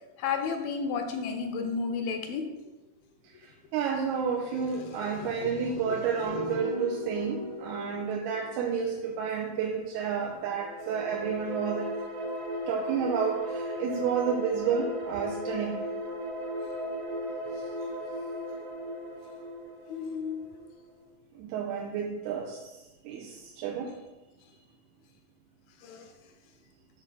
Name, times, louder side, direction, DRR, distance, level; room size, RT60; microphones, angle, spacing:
voice 1, 0.2-2.5 4.8-6.0 6.3-6.6 19.9-20.5 25.8-26.1, left 5 dB, 80° left, 5 dB, 2.3 m, -33 dB
voice 2, 3.2-11.9 12.7-15.8 17.5-17.6 21.4-22.8 23.0-23.9, right 6 dB, 85° right, 0 dB, 2.7 m, -31 dB
sound 1, 6.2-9.8 10.4-21.1, equal, 65° right, 2.7 m, -37 dB
7.7 x 4.0 x 6.1 m, 1.1 s
omnidirectional pair, 4.4 m